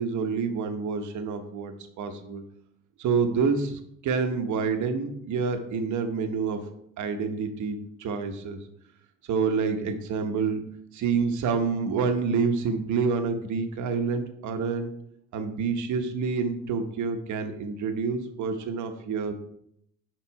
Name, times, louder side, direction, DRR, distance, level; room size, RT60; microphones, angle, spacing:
voice 1, 0.0-2.4 3.0-6.6 7.0-8.6 9.3-10.6 10.9-14.9 15.3-19.3, right 5 dB, 75° right, 6 dB, 1.0 m, -28 dB
6.0 x 5.2 x 4.7 m, 0.72 s
cardioid pair, 90°, 30 cm